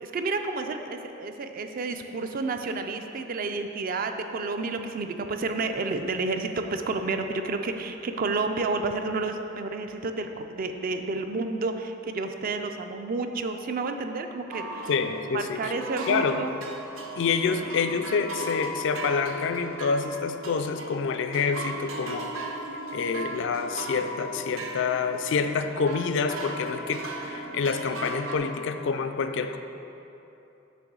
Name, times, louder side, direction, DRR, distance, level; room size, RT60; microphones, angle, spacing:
voice 1, 0.0-14.9 15.3-16.5, right 3 dB, 45° right, 6 dB, 0.4 m, -30 dB
sound 1, 14.5-28.4, right 1 dB, 80° right, 0.6 m, -37 dB
voice 2, 14.9-15.7 16.1-16.4 17.2-22.5 22.9-29.6, left 5 dB, 65° left, 8 dB, 0.3 m, -27 dB
7.5 x 3.0 x 6.1 m, 2.9 s
head